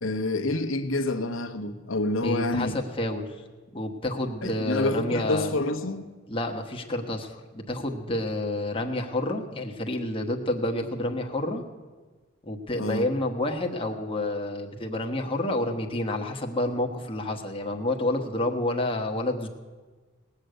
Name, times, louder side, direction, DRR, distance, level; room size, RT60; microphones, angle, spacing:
voice 1, 0.0-2.7 4.4-6.1 12.8-13.1, left 2 dB, 70° left, 1.0 m, -28 dB
voice 2, 2.2-3.4 3.7-5.5 6.3-11.6 12.4-19.5, left 1 dB, 25° left, 1.2 m, -29 dB
19.0 x 6.6 x 7.9 m
head